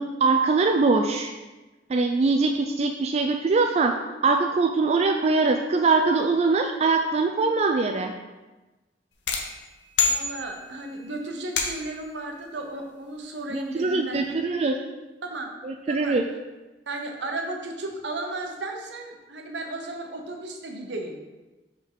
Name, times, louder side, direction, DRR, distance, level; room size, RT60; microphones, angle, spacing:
voice 1, 0.0-1.3 1.9-3.9 4.2-8.1 13.5-14.8 15.6-16.2, right 3 dB, 35° right, 4 dB, 0.3 m, -22 dB
sound 1, 9.3-10.9 11.6-12.1, left 5 dB, 85° left, 0.8 m, -27 dB
voice 2, 10.0-14.2 15.2-15.5 15.9-16.2 16.9-21.2, right 2 dB, 75° right, 3 dB, 0.9 m, -34 dB
5.5 x 3.7 x 4.6 m, 1.1 s
head